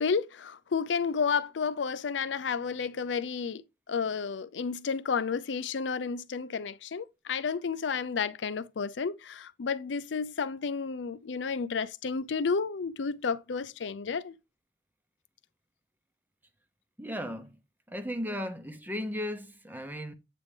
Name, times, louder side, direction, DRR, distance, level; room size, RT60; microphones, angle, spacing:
voice 1, 0.0-3.6 3.9-14.3, left 5 dB, 85° left, 0.5 m, -31 dB
voice 2, 17.0-17.6 17.9-20.1, equal, 10° right, 0.8 m, -36 dB
8.5 x 3.4 x 3.3 m
head